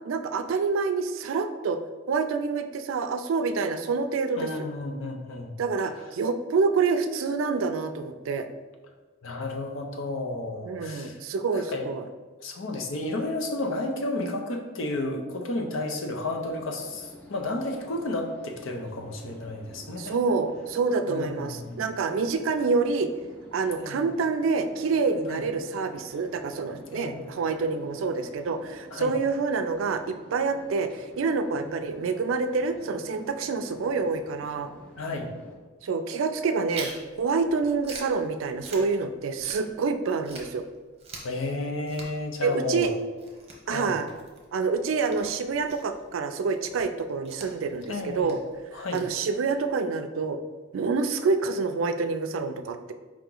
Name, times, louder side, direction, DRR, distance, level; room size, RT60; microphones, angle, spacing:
voice 1, 0.0-1.8 2.1-4.5 5.6-8.5 10.7-12.0 20.0-23.1 23.5-34.7 35.8-36.9 37.2-40.6 42.4-42.9 43.7-44.1 44.5-48.4 48.7-50.4 50.7-52.9, right 4 dB, 80° right, 8 dB, 0.4 m, -27 dB
voice 2, 4.4-5.5 9.2-11.2 11.5-11.9 12.4-20.2 21.1-21.8 23.8-24.0 25.3-25.4 26.9-27.2 28.9-29.1 31.6-31.7 35.0-35.3 41.2-43.0 43.7-43.9 47.9-48.3 48.7-49.0, left 2 dB, 80° left, 3 dB, 0.7 m, -32 dB
sound 1, 16.3-35.6, left 1 dB, 5° left, 0.6 m, -50 dB
Chewing mastication, 36.7-39.9 40.2-49.7, right 3 dB, 30° right, 0.8 m, -46 dB
4.8 x 2.9 x 3.8 m, 1.3 s
head